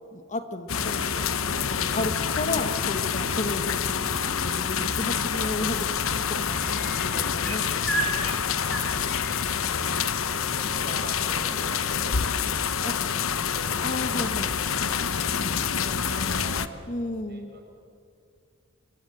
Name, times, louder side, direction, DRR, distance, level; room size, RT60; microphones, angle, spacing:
voice 1, 0.1-1.2 1.7-6.1 6.5-8.4 12.8-12.9 13.8-14.5 16.9-17.5, left 2 dB, 35° left, 9 dB, 1.4 m, -33 dB
sound 1, 0.7-16.7, left 7 dB, 70° left, 1.0 m, -27 dB
sound 2, 6.5-10.1 11.7-11.8, right 2 dB, ahead, 4.9 m, -35 dB
voice 2, 10.1-13.8 15.3-17.7, right 2 dB, 50° right, 2 dB, 5.7 m, -44 dB
27.5 x 22.0 x 7.9 m, 2.4 s
head